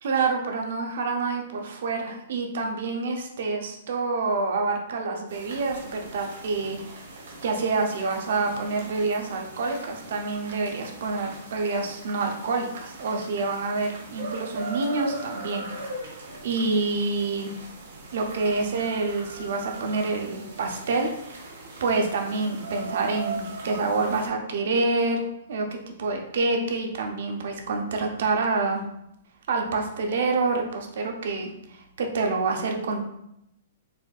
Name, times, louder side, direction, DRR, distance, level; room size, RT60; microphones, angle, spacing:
voice 1, 0.0-7.0 7.4-15.7 16.4-17.5 18.1-25.2 25.5-28.8 29.5-33.0, right 3 dB, 60° right, 2 dB, 0.6 m, -27 dB
sound 1, 5.3-24.3, right 3 dB, 80° right, 1.4 m, -39 dB
4.1 x 2.5 x 2.3 m, 0.80 s
hypercardioid pair, 170°, 0 cm